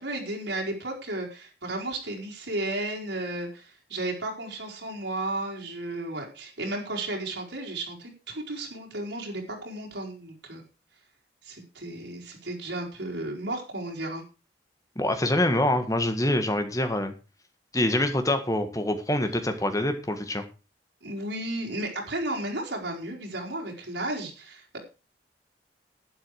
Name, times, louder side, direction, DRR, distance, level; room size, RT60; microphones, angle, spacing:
voice 1, 0.0-10.6 11.4-14.2 21.0-24.8, right 1 dB, 90° right, -1 dB, 4.6 m, -33 dB
voice 2, 15.0-17.1 17.7-20.4, left 1 dB, 20° left, 7 dB, 1.7 m, -25 dB
12.0 x 10.5 x 4.9 m, 0.33 s
head